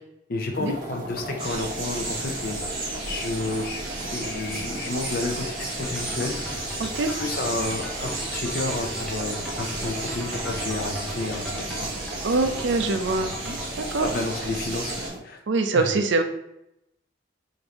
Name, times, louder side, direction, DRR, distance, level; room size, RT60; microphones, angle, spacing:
voice 1, 0.3-3.8 4.1-6.7 7.1-11.9 14.0-15.4 15.7-15.9, left 2 dB, 55° left, 2 dB, 0.6 m, -31 dB
sound 1, 0.5-15.2, right 1 dB, 45° right, 1.0 m, -37 dB
sound 2, 1.4-15.1, right 2 dB, 25° right, 1.5 m, -34 dB
sound 3, 5.8-13.7, left 1 dB, 5° left, 0.7 m, -40 dB
voice 2, 6.8-7.1 12.2-14.1 15.5-16.2, right 3 dB, 80° right, 6 dB, 0.5 m, -24 dB
5.1 x 2.7 x 2.9 m, 0.82 s
head